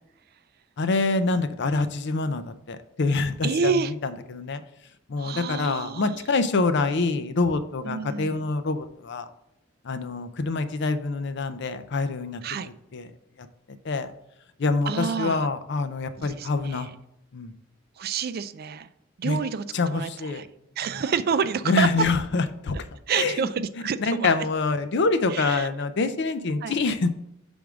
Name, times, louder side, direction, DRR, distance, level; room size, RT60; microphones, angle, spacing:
voice 1, 0.8-3.7 4.0-4.6 5.1-9.2 9.8-12.4 12.9-13.1 13.8-14.1 14.6-16.9 17.3-17.5 19.2-19.4 19.7-20.4 20.9-21.0 21.7-22.8 23.1-23.5 24.0-27.1, left 3 dB, 60° left, 10 dB, 0.5 m, -26 dB
voice 2, 3.4-3.9 5.2-6.2 7.8-8.5 12.4-12.7 14.9-15.5 16.2-16.9 18.0-18.9 19.2-20.5 20.8-21.9 23.1-24.5 25.3-25.7 26.6-26.8, right 6 dB, 50° right, 13 dB, 0.4 m, -29 dB
6.2 x 3.5 x 6.0 m, 0.83 s
head